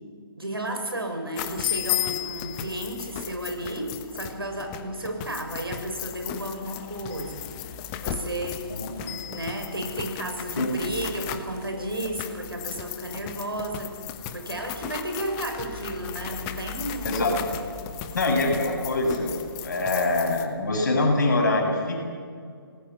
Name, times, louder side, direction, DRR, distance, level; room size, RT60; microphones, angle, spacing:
voice 1, 0.3-7.4 8.0-8.7 8.9-13.9 14.3-17.3, right 1 dB, 70° right, 3 dB, 7.0 m, -33 dB
sound 1, 1.4-20.5, left 10 dB, 20° left, 1.3 m, -35 dB
voice 2, 18.1-19.3 19.6-22.0, left 2 dB, 50° left, 2 dB, 7.0 m, -24 dB
28.5 x 20.0 x 7.8 m, 2.2 s
figure-of-eight pair, 140°, 13 cm